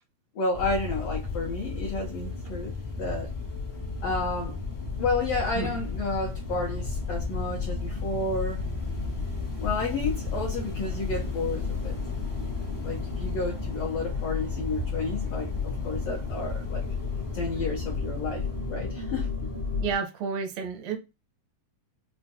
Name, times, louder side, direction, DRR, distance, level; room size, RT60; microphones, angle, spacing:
voice 1, 0.3-3.3 4.0-4.6 5.0-8.6 9.6-12.0 12.8-16.8 17.3-19.3, left 3 dB, 80° left, 1.4 m, -31 dB
sound 1, 0.5-19.9, left 4 dB, 45° left, 0.6 m, -32 dB
sound 2, 4.9-6.6, right 2 dB, 60° right, 0.7 m, -40 dB
voice 2, 19.8-21.0, right 6 dB, 80° right, 1.5 m, -30 dB
5.6 x 2.2 x 2.7 m
omnidirectional pair, 4.0 m